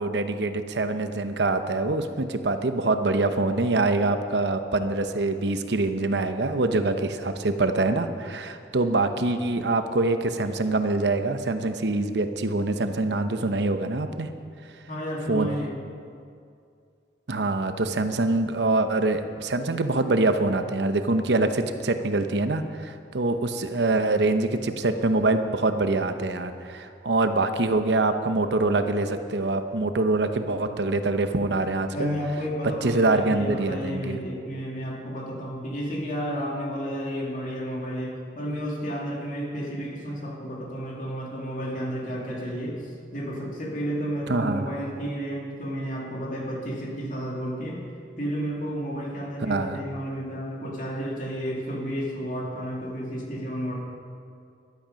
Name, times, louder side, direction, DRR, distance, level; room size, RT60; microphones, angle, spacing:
voice 1, 0.0-14.3 15.3-15.5 17.3-32.1 32.8-34.2 44.3-44.7 49.4-49.8, right 2 dB, 80° right, 8 dB, 0.8 m, -24 dB
voice 2, 14.9-15.8 31.9-47.8 48.2-53.7, equal, 45° left, -2 dB, 2.6 m, -32 dB
14.5 x 12.0 x 5.2 m, 2.4 s
head